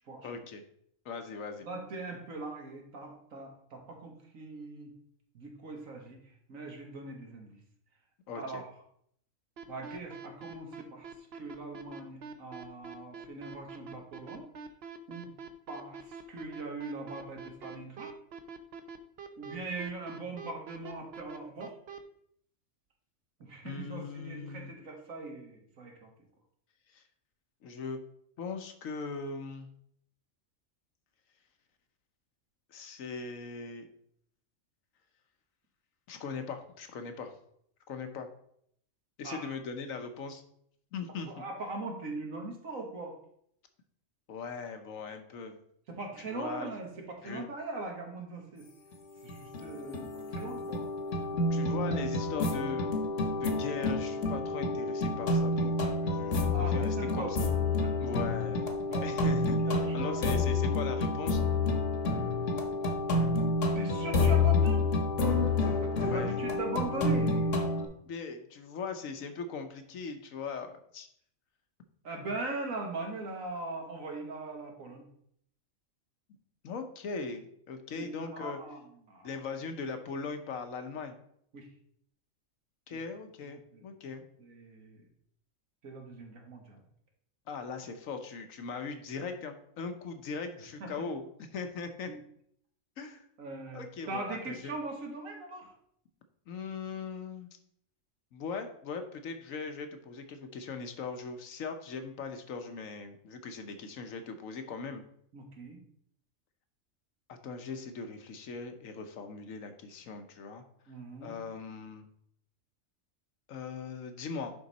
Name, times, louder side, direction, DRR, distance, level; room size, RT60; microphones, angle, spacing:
voice 1, 0.2-0.6 1.0-1.7 8.3-8.6 23.6-24.7 26.9-27.0 27.6-28.0 28.4-29.7 32.7-33.9 36.1-37.3 37.9-38.3 39.2-40.4 40.9-41.3 44.3-45.6 46.2-46.7 47.2-47.5 51.2-52.9 53.4-57.4 58.0-58.7 59.0-61.4 66.0-66.4 68.0-71.1 76.6-78.6 79.2-81.2 82.9-84.2 87.5-91.2 91.5-92.1 93.0-93.3 93.7-94.7 96.5-97.5 98.3-105.0 107.3-110.6 111.2-112.0 113.5-114.5, left 5 dB, 85° left, 7 dB, 1.3 m, -40 dB
voice 2, 1.6-4.9 5.3-7.6 8.4-8.7 9.7-14.5 15.1-15.3 15.7-18.1 19.4-21.7 23.4-26.1 39.2-39.6 41.3-43.2 45.9-48.7 49.2-50.9 56.4-57.3 57.8-57.9 58.9-59.2 59.6-60.3 63.8-64.9 65.6-67.5 72.0-75.1 77.9-79.4 81.5-81.7 82.9-83.0 83.4-83.8 84.4-85.1 85.8-86.8 90.8-90.9 92.1-92.2 93.4-95.7 105.3-105.8 110.9-111.4, right 2 dB, 85° right, 1 dB, 1.9 m, -40 dB
sound 1, 9.6-22.0, right 6 dB, 55° right, 0.8 m, -44 dB
sound 2, 48.9-49.0 49.3-67.9, left 3 dB, 65° left, 1.4 m, -29 dB
10.0 x 3.9 x 4.1 m, 0.69 s
omnidirectional pair, 1.4 m